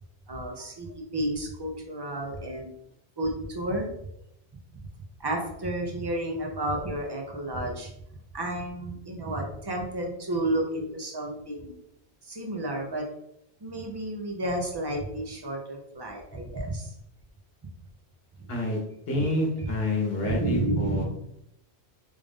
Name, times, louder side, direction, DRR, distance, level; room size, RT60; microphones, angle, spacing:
voice 1, 0.3-2.7 3.2-3.9 4.7-4.8 5.2-7.9 8.3-11.7 12.2-13.1 13.6-16.9 19.2-19.7 20.2-21.0, right 1 dB, 30° right, 1 dB, 0.5 m, -31 dB
voice 2, 18.5-18.8 19.1-21.0, left 2 dB, 60° left, -1 dB, 1.2 m, -28 dB
3.5 x 2.5 x 3.5 m, 0.77 s
omnidirectional pair, 1.2 m